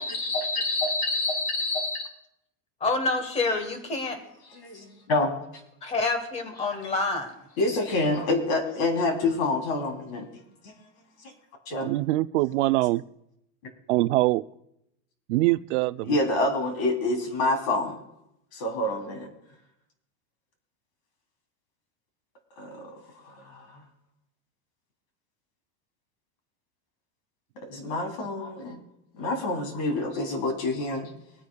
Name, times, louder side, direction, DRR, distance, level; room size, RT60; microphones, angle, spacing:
voice 1, 0.0-2.1 3.5-3.6 4.5-5.3 7.6-10.3 10.6-10.7 11.2-11.3 11.6-11.9 16.0-18.0 18.5-19.3 22.6-23.8 27.5-28.8 29.1-31.1, left 2 dB, 50° left, 3.3 m, -27 dB
voice 2, 2.8-4.2 5.8-7.3, left 3 dB, 15° left, 1.2 m, -27 dB
voice 3, 11.8-13.0 13.9-14.4 15.3-16.1, right 18 dB, 55° right, 0.5 m, -23 dB
24.0 x 9.6 x 2.3 m
supercardioid pair, 165°, 44 cm